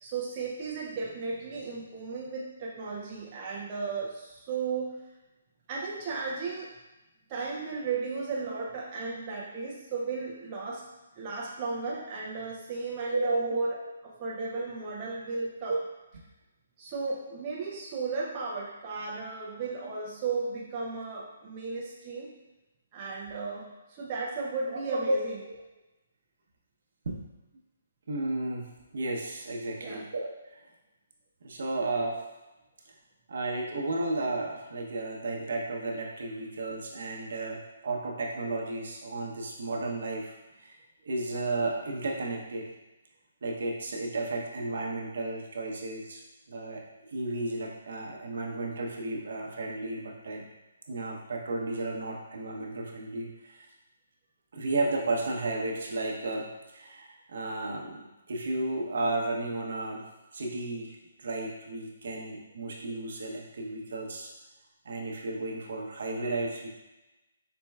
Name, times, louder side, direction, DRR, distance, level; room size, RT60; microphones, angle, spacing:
voice 1, 0.0-5.0 5.7-6.7 7.3-10.9 11.2-13.8 14.0-15.8 16.8-22.3 22.9-25.3 29.8-30.1, right 4 dB, 25° right, -4 dB, 0.5 m, -35 dB
voice 2, 13.1-13.6 15.7-15.8 24.7-25.2 27.0-27.2 28.1-30.6 31.4-32.2 33.3-40.8 41.0-42.7 43.4-46.2 46.5-46.8 47.1-50.5 50.9-53.7 54.5-60.0 60.3-64.3 64.8-66.7, right 2 dB, 60° right, 0 dB, 0.8 m, -33 dB
4.3 x 4.1 x 2.3 m, 1.0 s
hypercardioid pair, 170°, 0 cm